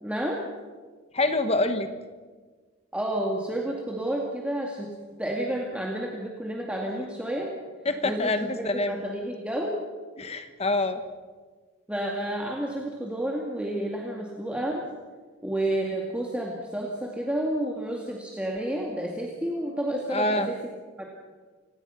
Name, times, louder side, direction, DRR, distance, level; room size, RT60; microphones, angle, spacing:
voice 1, 0.0-0.4 2.9-4.9 5.2-7.5 8.0-9.8 11.9-14.8 15.4-20.5 21.0-21.1, right 1 dB, 5° right, -2 dB, 2.1 m, -30 dB
voice 2, 1.1-1.9 7.8-9.0 10.2-11.0 20.1-20.5, left 2 dB, 30° left, 9 dB, 1.1 m, -26 dB
28.5 x 17.5 x 5.8 m, 1.4 s
head